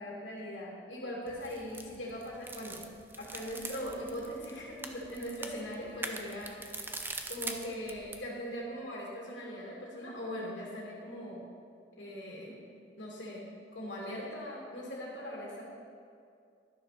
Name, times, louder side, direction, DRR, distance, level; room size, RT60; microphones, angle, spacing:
voice 1, 0.0-2.8 3.2-7.0 7.3-11.4 12.0-12.6 13.0-13.5 13.7-15.6, equal, 80° left, -5 dB, 2.4 m, -40 dB
sound 1, 1.3-8.3, right 3 dB, 10° right, 0.6 m, -43 dB
12.5 x 6.6 x 5.9 m, 2.4 s
head